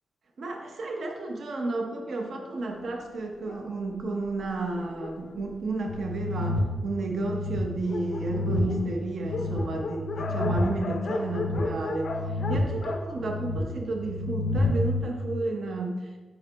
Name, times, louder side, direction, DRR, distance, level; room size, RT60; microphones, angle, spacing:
voice 1, 0.4-16.1, right 2 dB, 50° right, 2 dB, 0.8 m, -32 dB
Dog, 3.4-6.4 7.1-7.2 7.5-7.6 7.8-14.2, left 3 dB, 50° left, 0.5 m, -36 dB
sound 1, 5.9-15.0, left 1 dB, 90° left, 0.6 m, -31 dB
5.9 x 5.1 x 3.3 m, 1.3 s
wide cardioid pair, 145°, 0 cm